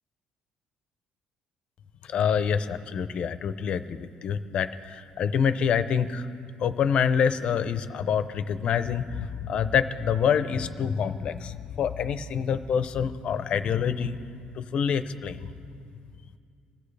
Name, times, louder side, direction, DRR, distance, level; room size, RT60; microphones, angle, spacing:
voice 1, 2.0-6.3 6.6-15.5, left 7 dB, 40° left, 12 dB, 0.6 m, -26 dB
27.0 x 15.5 x 3.3 m, 2.3 s
cardioid pair, 170°, 3 cm